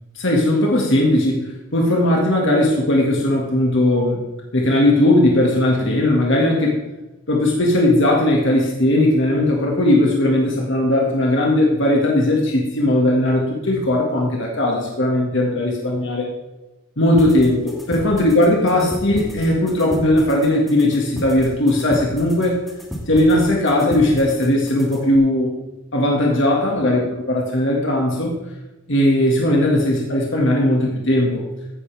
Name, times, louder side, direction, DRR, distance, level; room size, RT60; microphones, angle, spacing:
voice 1, 0.2-4.2 4.5-6.7 7.3-16.3 17.0-22.6 23.1-25.5 25.9-28.3 28.9-31.4, left 1 dB, 60° left, -1 dB, 2.0 m, -18 dB
sound 1, 17.2-25.2, equal, ahead, 2.0 m, -34 dB
15.5 x 10.0 x 3.5 m, 1.0 s
head